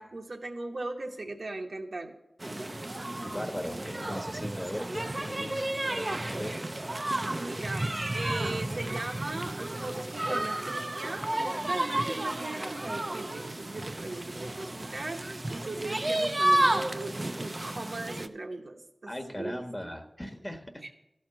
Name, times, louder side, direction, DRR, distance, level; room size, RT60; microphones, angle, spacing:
voice 1, 0.0-2.1 7.3-11.3 11.6-20.0 20.8-20.9, right 2 dB, 65° right, 2 dB, 1.0 m, -38 dB
sound 1, 2.4-18.3, right 1 dB, 35° right, 0.5 m, -32 dB
voice 2, 3.0-6.6 19.1-20.9, equal, 15° left, 6 dB, 1.2 m, -39 dB
12.5 x 4.4 x 7.6 m, 0.89 s
wide cardioid pair, 50°, 0 cm